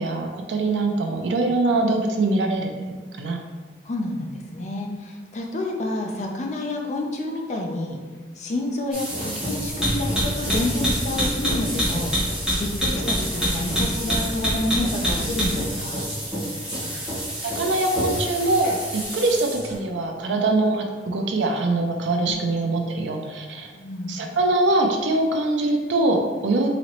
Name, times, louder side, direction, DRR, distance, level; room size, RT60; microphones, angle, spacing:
voice 1, 0.0-2.7 3.2-3.4 17.6-23.7 24.1-26.7, right 2 dB, 90° right, 2 dB, 0.5 m, -23 dB
voice 2, 3.8-8.0 8.4-12.1 12.6-16.0 22.2-22.5 23.7-24.2, left 2 dB, 40° left, 1 dB, 0.5 m, -29 dB
sound 1, 8.9-19.8, equal, 5° right, 1.2 m, -26 dB
4.0 x 2.9 x 3.0 m, 1.4 s
head